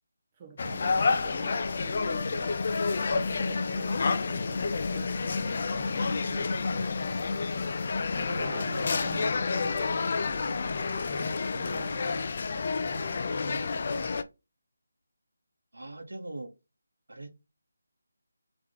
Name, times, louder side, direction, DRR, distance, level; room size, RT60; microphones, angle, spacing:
voice 1, 0.3-14.2, right 6 dB, 25° right, 0.8 m, -48 dB
sound 1, 0.6-14.2, left 4 dB, 45° left, 0.4 m, -29 dB
voice 2, 8.4-9.1 15.7-16.5 17.1-17.3, right 2 dB, 85° right, 0.9 m, -40 dB
3.7 x 2.9 x 3.6 m
figure-of-eight pair, 160°, 0 cm